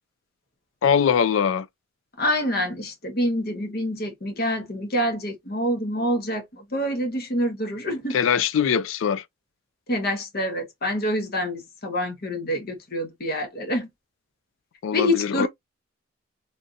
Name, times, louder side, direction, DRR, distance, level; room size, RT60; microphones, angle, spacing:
voice 1, 0.8-1.7 8.1-9.2 14.8-15.5, left 7 dB, 75° left, 0.3 m, -22 dB
voice 2, 2.2-8.2 9.9-13.9 14.9-15.5, equal, 50° left, 1.0 m, -26 dB
3.3 x 2.7 x 2.5 m
head